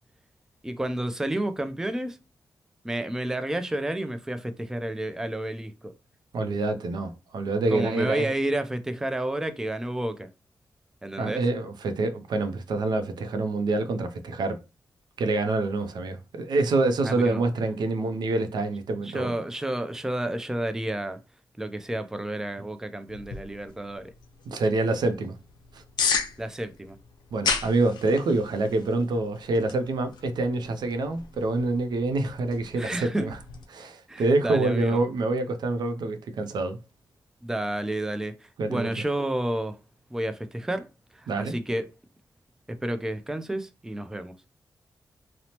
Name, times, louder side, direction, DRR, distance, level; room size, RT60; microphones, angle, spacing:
voice 1, 0.6-2.2 2.8-5.9 7.7-10.3 11.0-11.4 17.0-17.4 19.0-21.2 21.6-24.1 26.4-27.0 32.8-33.3 34.1-35.0 37.4-38.3 38.7-39.8 40.1-40.9 41.2-41.9 42.7-44.3, right 1 dB, 5° right, 0.3 m, -30 dB
voice 2, 6.3-8.3 11.2-14.6 15.2-19.3 24.5-25.4 25.7-25.8 27.3-33.4 33.7-36.8 38.6-38.9 41.3-41.5, right 2 dB, 75° right, 0.4 m, -26 dB
sound 1, 23.1-33.6, left 5 dB, 85° left, 0.4 m, -35 dB
2.8 x 2.0 x 2.9 m
cardioid pair, 75°, 7 cm